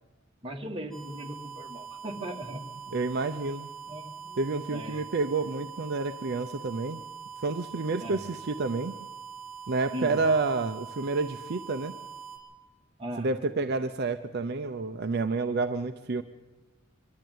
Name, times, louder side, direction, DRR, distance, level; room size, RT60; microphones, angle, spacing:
voice 1, 0.4-2.6 3.9-4.4 4.7-5.1 8.0-8.2 9.9-10.3 13.0-13.3, right 1 dB, 25° right, 2 dB, 1.9 m, -38 dB
sound 1, 0.9-12.4, right 6 dB, 5° left, 4.9 m, -43 dB
voice 2, 2.9-3.7 4.4-7.0 7.4-8.9 9.7-12.0 13.2-16.2, right 3 dB, 55° right, 8 dB, 0.6 m, -29 dB
24.0 x 12.0 x 9.3 m, 1.2 s
head